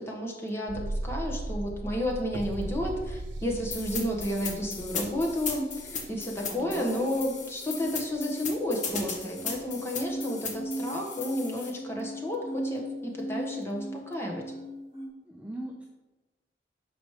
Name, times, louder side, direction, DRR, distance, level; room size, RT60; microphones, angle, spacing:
voice 1, 0.0-14.4, left 1 dB, 15° left, -1 dB, 1.2 m, -32 dB
sound 1, 0.7-7.5 7.8-7.9, right 1 dB, 85° right, 0.6 m, -38 dB
sound 2, 3.7-11.7, left 5 dB, 45° left, 1.0 m, -37 dB
sound 3, 6.1-15.1, right 1 dB, 30° right, 1.9 m, -39 dB
voice 2, 6.4-7.1 15.3-15.9, right 1 dB, 5° right, -1 dB, 0.5 m, -40 dB
6.0 x 5.0 x 4.9 m, 1.1 s
head